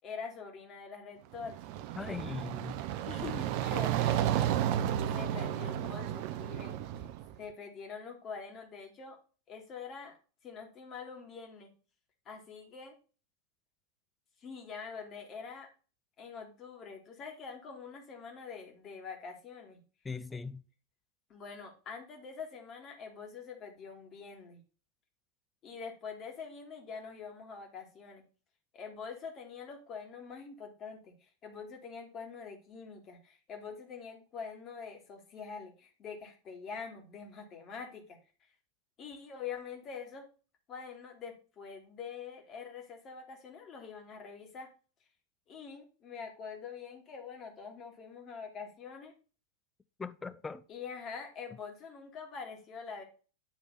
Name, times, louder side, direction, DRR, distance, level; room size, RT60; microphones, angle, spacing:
voice 1, 0.0-1.6 3.1-4.8 5.1-7.1 7.4-9.2 9.5-10.1 10.4-11.7 12.2-12.9 14.4-15.7 16.2-19.8 21.3-24.6 25.6-28.2 28.7-38.2 39.0-40.3 40.7-44.7 45.5-49.1 50.7-53.0, left 5 dB, 30° left, 1.7 m, -45 dB
sound 1, 1.3-7.3, right 11 dB, 45° right, 0.4 m, -32 dB
voice 2, 2.0-2.8 20.0-20.6 50.0-50.6, left 4 dB, 10° left, 0.4 m, -40 dB
8.4 x 3.3 x 4.0 m
figure-of-eight pair, 90°, 0 cm